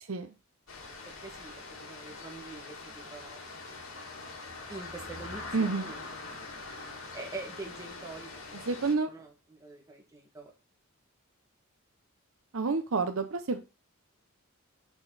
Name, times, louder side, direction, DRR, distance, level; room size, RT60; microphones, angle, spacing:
sound 1, 0.7-8.9, left 3 dB, 75° left, 2.4 m, -43 dB
voice 1, 1.1-3.4 4.7-6.3 7.1-8.7 9.1-10.5, right 3 dB, 15° right, -1 dB, 2.0 m, -45 dB
voice 2, 5.5-5.9 8.7-9.1 12.5-13.6, right 4 dB, 70° right, 8 dB, 0.8 m, -29 dB
6.3 x 6.0 x 4.1 m, 0.29 s
head